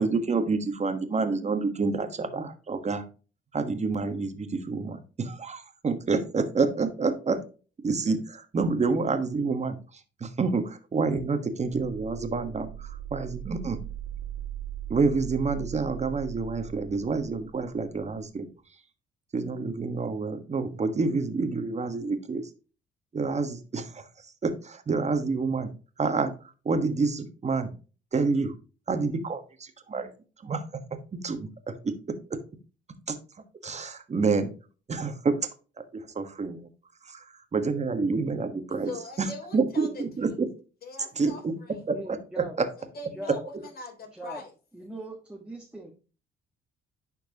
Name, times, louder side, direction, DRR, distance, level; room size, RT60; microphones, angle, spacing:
voice 1, 0.0-3.0 3.5-7.4 7.8-13.8 14.9-18.5 19.3-22.5 23.1-25.7 26.0-26.3 26.6-27.7 28.1-28.5 28.9-30.1 30.4-30.6 31.1-31.9 32.3-32.4 33.1-33.2 33.6-34.5 34.9-35.5 35.9-36.7 37.0-38.9 39.2-40.5 41.2-41.5 41.9-42.7 43.5-43.6, right 4 dB, 35° right, 1.4 m, -28 dB
sound 1, 11.5-18.2, right 11 dB, 85° right, 2.7 m, -39 dB
voice 2, 38.7-40.4 40.8-41.8 42.8-44.5, left 3 dB, 50° left, 3.4 m, -42 dB
voice 3, 41.9-42.5 43.1-43.4 44.1-44.4 44.7-45.9, right 1 dB, 5° right, 1.5 m, -40 dB
10.5 x 4.5 x 2.9 m
cardioid pair, 90°, 20 cm